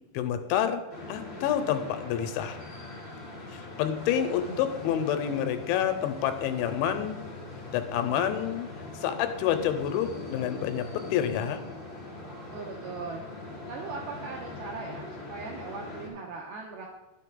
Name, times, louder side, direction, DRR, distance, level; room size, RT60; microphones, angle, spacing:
voice 1, 0.1-0.8 1.1-2.6 3.5-7.2 7.7-8.7 9.0-10.8 11.1-11.6, left 9 dB, 90° left, 8 dB, 3.1 m, -28 dB
sound 1, 0.9-16.1, left 2 dB, 40° left, 1.8 m, -41 dB
voice 2, 12.5-16.9, right 4 dB, 90° right, 0 dB, 2.2 m, -39 dB
10.5 x 6.5 x 3.8 m, 1.1 s
omnidirectional pair, 5.3 m